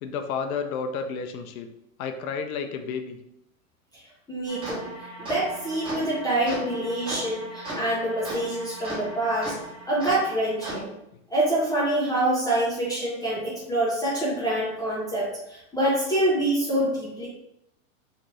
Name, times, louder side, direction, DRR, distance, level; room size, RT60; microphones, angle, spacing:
voice 1, 0.0-1.7 2.0-3.2, left 5 dB, 85° left, 6 dB, 0.5 m, -31 dB
voice 2, 3.9-9.5 9.9-10.9 11.3-17.3, right 1 dB, 10° left, -7 dB, 0.5 m, -26 dB
sound 1, 4.5-10.8, right 1 dB, 10° right, 1.0 m, -37 dB
2.7 x 2.4 x 3.0 m, 0.85 s
hypercardioid pair, 125°, 41 cm